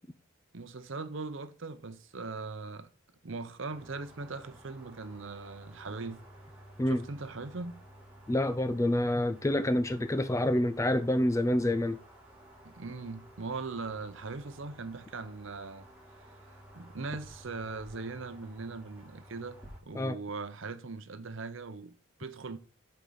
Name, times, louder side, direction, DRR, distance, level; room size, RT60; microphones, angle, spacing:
voice 1, 0.5-2.9 3.2-6.2 6.9-7.8 12.6-15.9 16.7-22.6, right 3 dB, 60° right, 0.7 m, -40 dB
sound 1, 3.7-19.8, right 1 dB, 10° right, 2.2 m, -53 dB
voice 2, 8.3-12.0 20.0-20.2, left 1 dB, 15° left, 0.4 m, -27 dB
8.3 x 4.5 x 4.0 m
head